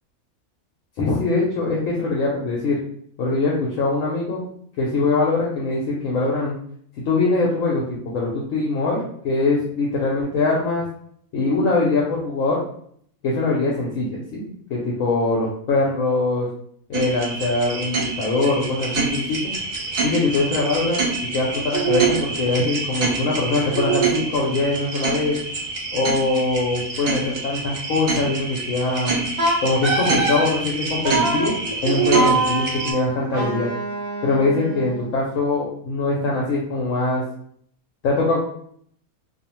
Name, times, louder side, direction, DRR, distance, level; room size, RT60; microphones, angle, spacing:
voice 1, 1.0-2.8 3.2-4.4 4.8-6.5 7.1-10.9 11.3-12.6 13.2-16.5 16.9-19.5 20.0-21.1 21.3-25.4 25.9-29.1 29.6-31.6 31.8-33.7 34.2-37.2 38.0-38.4, left 3 dB, 70° left, -4 dB, 0.9 m, -22 dB
sound 1, 16.9-32.9, right 4 dB, 75° right, 0.5 m, -26 dB
Wind instrument woodwind instrument, 29.4-30.5 31.0-31.5 32.1-35.1, right 2 dB, 50° right, 0.8 m, -24 dB
2.6 x 2.0 x 2.9 m, 0.63 s
omnidirectional pair, 1.5 m